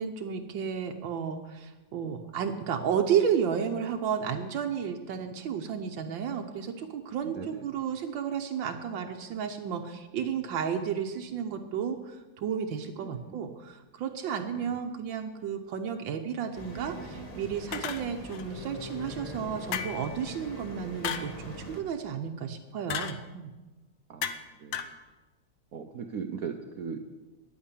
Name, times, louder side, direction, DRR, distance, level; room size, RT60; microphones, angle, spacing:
voice 1, 0.0-23.5, right 7 dB, 85° right, 4 dB, 1.6 m, -32 dB
voice 2, 7.2-7.6 13.0-13.3 24.1-24.9 25.7-27.0, right 6 dB, 60° right, 6 dB, 1.1 m, -39 dB
sound 1, 16.5-21.8, left 1 dB, 20° left, 1.7 m, -42 dB
sound 2, 17.7-18.4 19.7-20.2 21.0-21.4 22.9-23.2 24.2-24.5 24.7-25.0, left 8 dB, 85° left, 1.6 m, -34 dB
10.5 x 8.8 x 9.9 m, 1.2 s
omnidirectional pair, 2.0 m